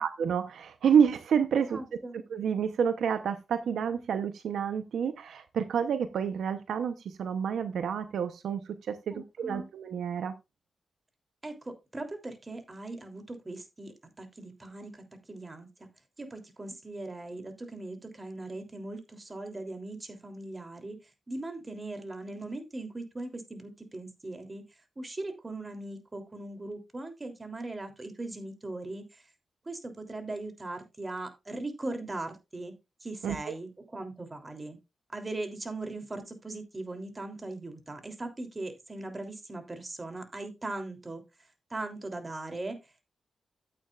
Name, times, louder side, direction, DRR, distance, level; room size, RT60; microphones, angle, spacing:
voice 1, 0.0-1.8 2.3-10.3 33.2-33.5, right 7 dB, 85° right, 10 dB, 0.8 m, -29 dB
voice 2, 1.7-2.2 9.1-9.7 11.4-15.9 16.2-21.0 21.3-24.6 25.0-29.2 29.6-32.7 33.0-34.8 35.1-41.2 41.7-42.8, right 2 dB, 30° right, 6 dB, 3.2 m, -39 dB
12.5 x 9.0 x 2.5 m, 0.24 s
cardioid pair, 60°, 0 cm